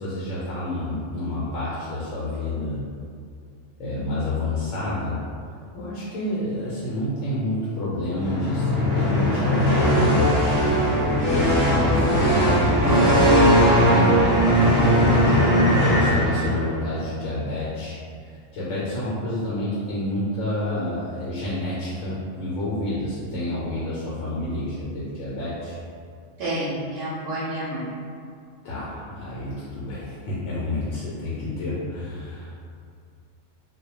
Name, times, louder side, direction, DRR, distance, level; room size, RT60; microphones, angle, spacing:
voice 1, 0.0-2.8 3.8-5.2 5.7-10.7 11.0-15.5 15.9-18.0 18.2-25.8 28.6-32.5, left 1 dB, 75° left, -8 dB, 0.9 m, -29 dB
sound 1, 8.2-16.8, equal, 20° right, 0.6 m, -19 dB
voice 2, 26.4-27.9 31.4-31.7, right 1 dB, 75° right, -9 dB, 0.9 m, -29 dB
2.3 x 2.0 x 2.8 m, 2.3 s
omnidirectional pair, 1.3 m